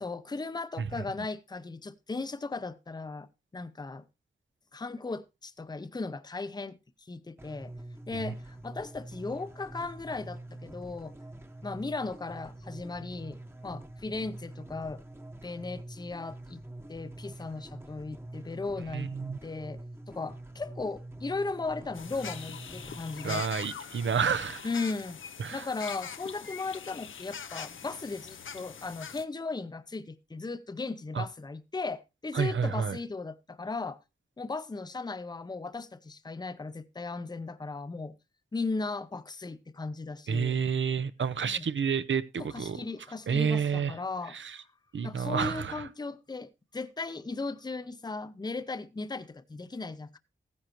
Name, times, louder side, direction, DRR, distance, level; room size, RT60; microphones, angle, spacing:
voice 1, 0.0-3.3 3.5-4.1 4.7-6.8 7.1-7.7 8.1-11.1 11.6-13.4 13.6-15.0 15.4-16.6 16.9-19.1 19.4-19.8 20.1-23.5 24.6-25.2 25.5-34.0 34.4-38.1 38.5-40.6 41.4-41.6 42.4-44.4 45.0-50.2, left 3 dB, 20° left, 0.6 m, -37 dB
sound 1, 7.4-23.4, right 1 dB, 10° right, 1.0 m, -45 dB
voice 2, 18.9-19.4 23.2-24.7 25.4-25.7 31.1-31.2 32.3-33.0 40.3-42.8 43.3-43.9 44.3-44.6 44.9-45.8, right 6 dB, 70° right, 0.7 m, -29 dB
sound 2, 21.9-29.2, left 7 dB, 75° left, 0.7 m, -43 dB
15.0 x 9.8 x 3.0 m
wide cardioid pair, 105°, 20 cm